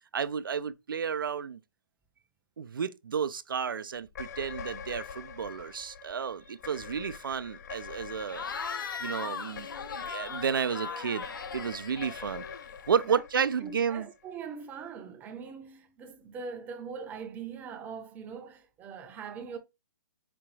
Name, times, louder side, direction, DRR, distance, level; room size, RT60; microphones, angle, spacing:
voice 1, 0.1-1.6 2.6-8.5 9.0-11.3 11.5-12.5 12.9-14.1, right 7 dB, 85° right, 0.5 m, -32 dB
sound 1, 4.1-14.5, left 7 dB, 55° left, 0.4 m, -45 dB
Cheering / Crowd, 8.3-12.9, left 5 dB, 80° left, 0.8 m, -38 dB
voice 2, 13.6-19.6, right 6 dB, 15° right, 0.6 m, -42 dB
5.0 x 2.3 x 3.1 m
hypercardioid pair, 145°, 11 cm